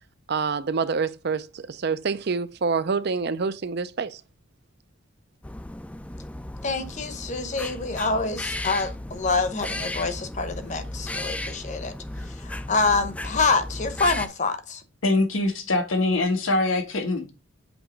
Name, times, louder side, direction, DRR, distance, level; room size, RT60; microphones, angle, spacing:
voice 1, 0.3-4.2, right 5 dB, 55° right, 0.5 m, -27 dB
sound 1, 5.4-14.3, left 1 dB, 5° left, 0.3 m, -35 dB
voice 2, 6.6-11.9 12.2-14.8, left 3 dB, 35° left, 0.8 m, -26 dB
voice 3, 15.0-17.3, left 2 dB, 85° left, 1.2 m, -23 dB
8.0 x 3.0 x 5.1 m
head